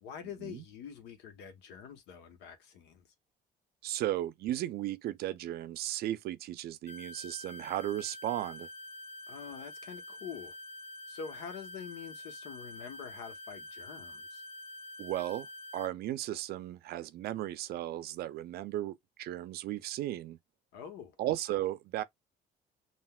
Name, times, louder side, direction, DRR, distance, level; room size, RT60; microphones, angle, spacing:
voice 1, 0.0-3.1 9.3-10.5 11.1-14.4 20.7-21.2, left 7 dB, 85° left, 1.1 m, -46 dB
voice 2, 3.8-8.7 15.0-15.5 15.7-20.4 21.2-22.0, right 14 dB, 70° right, 0.4 m, -35 dB
sound 1, 6.9-15.9, left 1 dB, 40° left, 2.0 m, -47 dB
5.7 x 2.5 x 2.3 m
cardioid pair, 110°, 17 cm